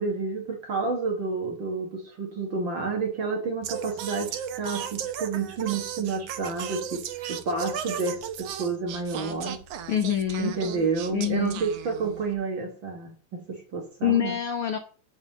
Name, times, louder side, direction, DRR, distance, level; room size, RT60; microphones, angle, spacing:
voice 1, 0.0-9.6 10.4-14.3, right 4 dB, 50° right, 1.7 m, -30 dB
Singing, 3.6-12.3, right 9 dB, 70° right, 1.6 m, -36 dB
voice 2, 9.9-10.5 11.1-11.6 13.5-13.6 14.0-14.8, left 10 dB, 75° left, 1.2 m, -26 dB
10.5 x 3.9 x 7.4 m
omnidirectional pair, 3.6 m